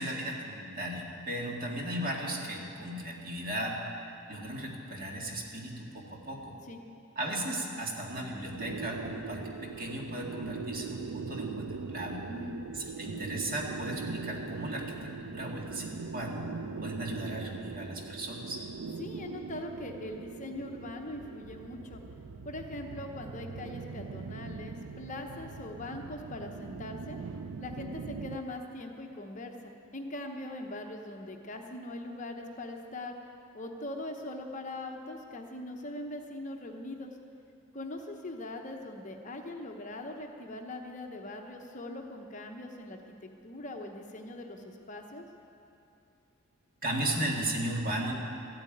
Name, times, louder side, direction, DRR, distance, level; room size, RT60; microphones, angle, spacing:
voice 1, 0.0-3.8 4.3-6.6 7.2-12.2 12.7-16.5 16.8-18.6 46.8-48.1, right 1 dB, 40° right, -1 dB, 1.9 m, -36 dB
sound 1, 8.6-28.4, right 4 dB, 85° right, 0.5 m, -41 dB
voice 2, 12.3-12.6 19.0-22.0 22.4-27.2 27.6-33.1 33.5-37.2 37.7-45.2, left 1 dB, 35° left, 3 dB, 0.9 m, -41 dB
14.0 x 8.9 x 9.2 m, 2.6 s
head